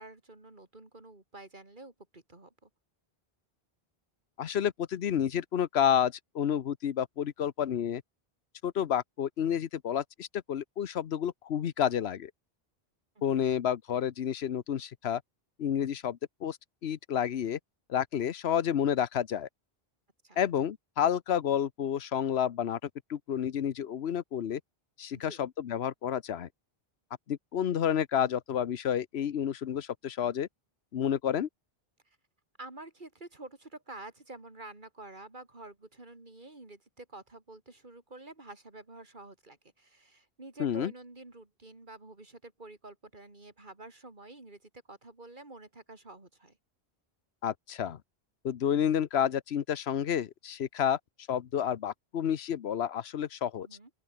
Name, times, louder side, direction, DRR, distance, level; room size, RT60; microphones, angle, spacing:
voice 1, 0.0-2.7 13.1-13.5 20.2-20.4 25.1-25.5 32.0-32.2 32.6-46.6 53.6-53.9, right 2 dB, 50° right, 3.3 m, -49 dB
voice 2, 4.4-8.0 8.6-12.3 13.2-15.2 15.6-16.6 16.8-17.6 17.9-19.5 20.4-24.6 25.0-26.5 27.3-30.5 30.9-31.5 40.6-40.9 47.4-48.0 48.4-51.0 51.3-53.7, left 9 dB, 85° left, 1.1 m, -30 dB
open air
omnidirectional pair, 1.0 m